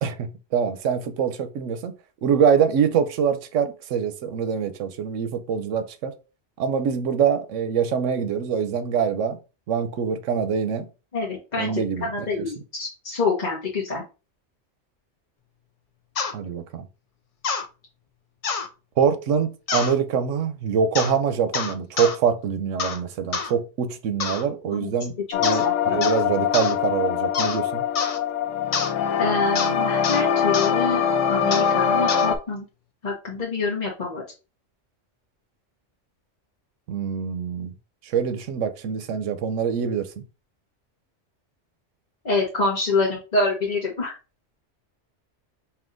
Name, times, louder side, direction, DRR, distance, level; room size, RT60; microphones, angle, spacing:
voice 1, 0.0-1.9 2.2-6.1 6.6-9.4 9.7-10.9 11.6-12.5 16.3-16.9 19.0-27.8 36.9-37.7 38.0-40.2, right 7 dB, 85° right, 1.0 m, -24 dB
voice 2, 11.1-14.0 24.7-24.9 25.3-26.0 29.2-32.6 33.0-34.2 42.2-44.2, left 3 dB, 40° left, 0.9 m, -26 dB
sound 1, 16.2-16.3 17.4-17.7 18.4-18.7 19.7-19.9 20.9-21.2 21.5-22.2 22.8-23.0 23.3-23.5 24.2-24.5 25.4-25.7 26.0-26.2 26.5-26.7 27.3-27.6 28.0-28.2 28.7-28.9 29.6-29.7 30.0-30.2 30.5-30.7 31.5-31.7 32.1-32.3, left 5 dB, 60° left, 0.3 m, -27 dB
sound 2, 25.3-32.4, left 7 dB, 85° left, 1.0 m, -23 dB
5.4 x 2.8 x 2.5 m
omnidirectional pair, 1.3 m